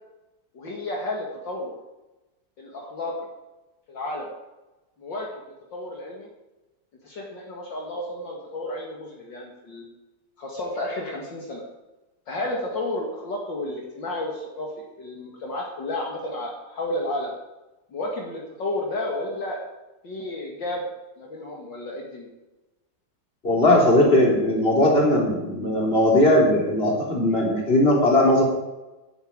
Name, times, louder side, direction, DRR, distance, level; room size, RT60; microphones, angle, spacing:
voice 1, 0.5-1.8 2.6-3.3 3.9-4.3 5.0-6.3 7.0-9.8 10.4-11.6 12.3-14.7 15.0-17.3 17.9-19.6 20.0-20.8 21.2-22.3, left 1 dB, 55° left, -2 dB, 2.6 m, -32 dB
voice 2, 23.4-28.4, left 1 dB, 25° left, -2 dB, 3.7 m, -19 dB
10.5 x 9.5 x 8.8 m, 1.0 s
omnidirectional pair, 2.4 m